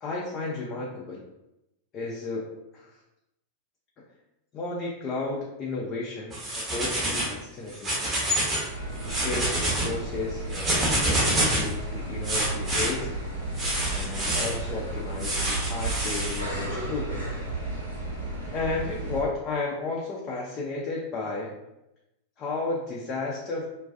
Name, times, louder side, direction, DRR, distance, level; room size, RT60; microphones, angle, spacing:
voice 1, 0.0-1.2 1.9-2.5 2.7-3.0 4.0-4.1 4.5-8.2 9.0-13.1 13.9-17.3 17.7-17.9 18.5-21.5 22.4-23.7, left 3 dB, 30° left, -3 dB, 0.4 m, -33 dB
sound 1, 6.3-7.3 7.7-8.7 9.0-9.9 10.5-11.7 12.2-12.9 13.6-14.5 15.2-16.4, right 1 dB, 20° right, 0.8 m, -27 dB
sound 2, 8.7-19.2, right 2 dB, 70° right, 0.9 m, -33 dB
2.3 x 2.3 x 2.4 m, 0.91 s
figure-of-eight pair, 90°, 0 cm